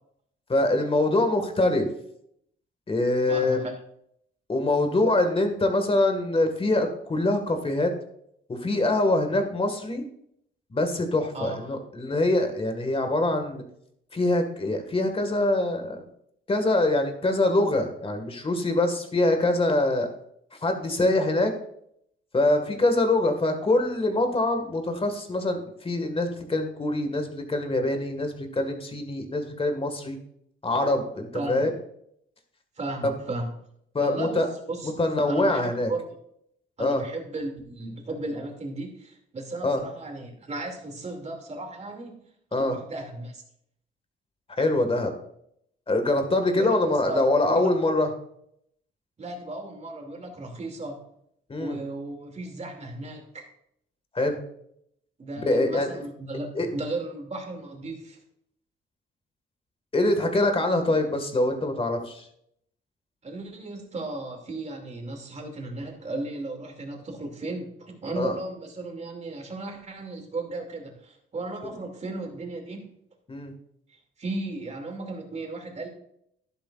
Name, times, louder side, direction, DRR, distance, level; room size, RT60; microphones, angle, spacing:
voice 1, 0.5-1.9 2.9-3.7 4.5-7.9 8.5-10.0 10.7-13.6 14.1-16.0 16.5-20.1 20.6-21.5 22.3-30.2 30.6-31.7 33.0-33.1 33.9-34.5 35.0-35.9 36.8-37.0 39.6-39.8 42.5-42.8 44.6-45.1 45.9-48.1 51.5-51.8 54.1-54.4 55.5-55.9 56.6-56.7 59.9-62.2 68.2-68.3 73.3-73.5, left 2 dB, 30° left, 6 dB, 1.9 m, -24 dB
voice 2, 3.3-3.7 11.3-11.6 31.3-31.7 32.8-33.5 34.0-34.9 35.3-36.0 36.8-42.2 42.6-43.4 46.6-47.7 49.2-51.0 51.6-53.5 55.2-58.2 63.2-72.9 74.2-75.9, right 2 dB, 35° right, 3 dB, 2.7 m, -35 dB
12.0 x 11.0 x 2.5 m, 0.71 s
cardioid pair, 90°, 20 cm